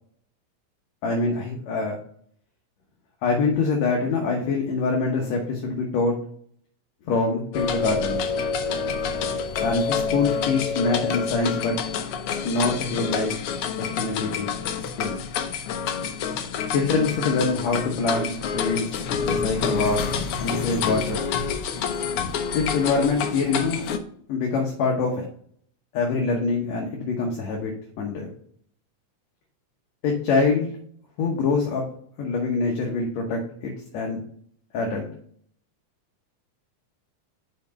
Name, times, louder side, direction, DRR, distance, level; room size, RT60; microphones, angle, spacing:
voice 1, 1.0-2.0 3.2-6.1 7.1-8.2 9.6-11.8 12.4-13.3 13.8-14.5 15.0-15.1 16.7-18.9 19.2-20.1 20.4-21.2 22.5-23.8 24.3-25.3 25.9-28.3 30.0-30.8 31.2-31.8 32.2-34.2 34.7-35.1, left 4 dB, 70° left, 0 dB, 2.1 m, -24 dB
sound 1, 7.5-24.0, left 6 dB, 90° left, 1.2 m, -28 dB
5.8 x 4.8 x 5.2 m, 0.62 s
omnidirectional pair, 3.5 m